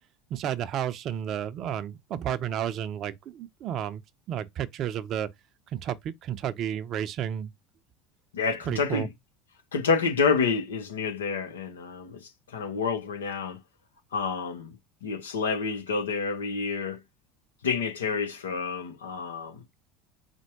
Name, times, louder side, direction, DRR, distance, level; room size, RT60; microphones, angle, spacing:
voice 1, 0.3-4.0 4.3-5.3 5.7-6.0 6.2-7.5 8.7-9.1, right 10 dB, 45° right, 0.5 m, -31 dB
voice 2, 8.3-9.1 9.7-13.6 14.1-17.0 17.6-19.6, left 5 dB, 80° left, 0.8 m, -29 dB
4.4 x 2.1 x 4.5 m
hypercardioid pair, 75°, 0 cm